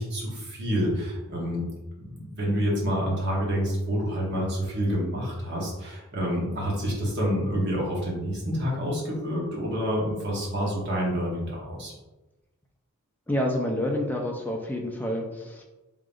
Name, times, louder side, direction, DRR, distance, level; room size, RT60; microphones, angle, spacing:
voice 1, 0.0-1.7 2.0-11.9, equal, 50° right, -4 dB, 1.0 m, -28 dB
voice 2, 13.3-15.6, left 1 dB, 10° left, 1 dB, 0.4 m, -28 dB
3.6 x 3.5 x 2.5 m, 1.1 s
head